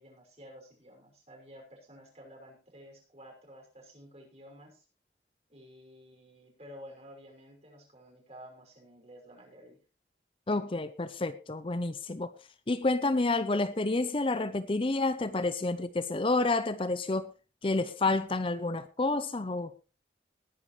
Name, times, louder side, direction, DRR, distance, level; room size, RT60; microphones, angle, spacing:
voice 1, 0.0-4.8 5.5-9.8, equal, 35° right, 5.8 m, -52 dB
voice 2, 10.5-12.3 12.7-17.3 17.6-19.7, left 2 dB, 30° left, 0.6 m, -29 dB
19.5 x 10.5 x 3.2 m
head